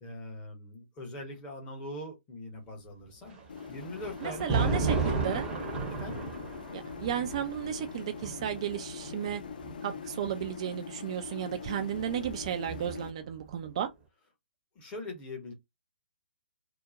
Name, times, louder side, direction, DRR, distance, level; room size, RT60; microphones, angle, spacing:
voice 1, 0.0-3.4 3.7-5.0 5.9-6.2 14.7-15.5, left 1 dB, 20° left, 0.8 m, -42 dB
Thunder, 3.3-10.5 11.5-13.3, right 4 dB, 10° right, 0.7 m, -34 dB
sound 1, 3.5-13.1, left 6 dB, 50° left, 0.4 m, -43 dB
voice 2, 4.2-5.5 6.7-9.4 9.8-13.9, right 9 dB, 35° right, 0.3 m, -34 dB
2.8 x 2.0 x 2.5 m
figure-of-eight pair, 130°, 6 cm